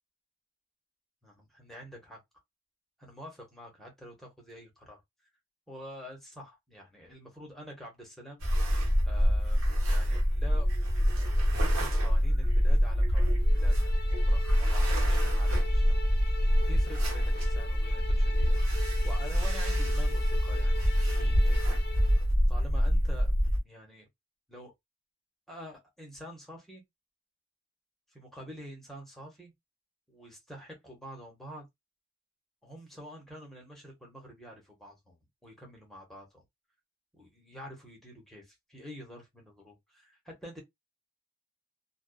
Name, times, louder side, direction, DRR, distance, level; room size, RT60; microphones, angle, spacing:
voice 1, 1.2-2.2 3.0-5.0 5.7-8.4 9.0-10.7 11.5-15.8 16.7-18.6 19.0-21.8 22.5-23.3 23.6-24.1 24.5-24.7 25.5-26.8 28.1-29.5 30.1-31.6 32.6-35.2 35.4-36.4 37.1-40.6, equal, ahead, 0.9 m, -47 dB
sound 1, 8.4-23.6, equal, 80° right, 1.0 m, -25 dB
sound 2, 13.4-22.3, left 4 dB, 50° left, 0.6 m, -43 dB
2.4 x 2.2 x 2.2 m
head